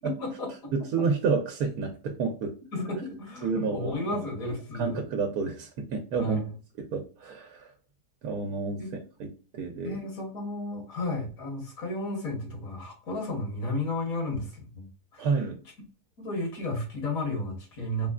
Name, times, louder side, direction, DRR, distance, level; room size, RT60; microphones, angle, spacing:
voice 1, 0.0-0.7 2.7-5.0 6.2-6.5 8.8-8.9 9.8-14.9 15.1-15.3 16.2-18.1, left 1 dB, 60° left, 1 dB, 1.6 m, -33 dB
voice 2, 0.7-2.5 3.4-4.2 4.7-6.4 6.8-7.7 8.2-8.8 9.2-9.3 9.5-10.0 15.2-15.6, right 4 dB, 75° right, 3 dB, 1.1 m, -29 dB
3.7 x 3.3 x 2.3 m, 0.36 s
omnidirectional pair, 1.7 m